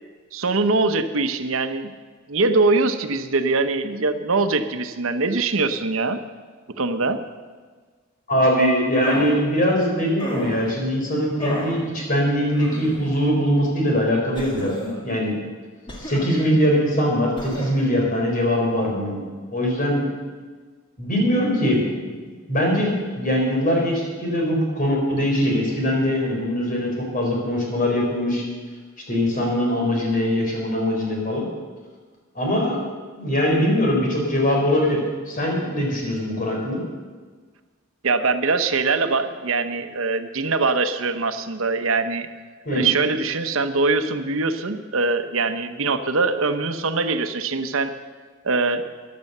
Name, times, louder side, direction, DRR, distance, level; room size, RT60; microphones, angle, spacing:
voice 1, 0.3-1.9 2.3-6.2 6.7-7.2 38.0-42.3 42.7-47.9 48.4-48.8, right 3 dB, 75° right, 10 dB, 0.9 m, -22 dB
voice 2, 8.3-15.3 16.0-19.2 19.5-20.1 21.0-21.9 22.5-28.4 29.1-31.5 32.3-32.8 33.2-36.8 42.7-42.9, equal, 40° left, -1 dB, 4.2 m, -22 dB
sound 1, 9.0-9.4 10.2-10.8 11.4-11.8 12.5-13.2 14.3-15.0 15.9-16.5 17.3-17.8, equal, 25° left, 2.2 m, -33 dB
14.5 x 10.5 x 6.7 m, 1.5 s
head